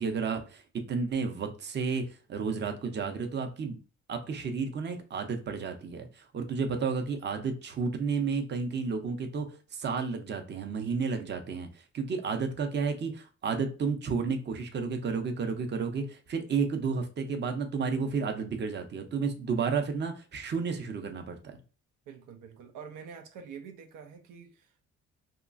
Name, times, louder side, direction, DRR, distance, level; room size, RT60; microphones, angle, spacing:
voice 1, 0.0-3.8 4.1-21.6, right 5 dB, 35° right, 0.6 m, -32 dB
voice 2, 22.1-24.8, right 6 dB, 90° right, 0.6 m, -46 dB
2.9 x 2.4 x 2.4 m
cardioid pair, 90°, 30 cm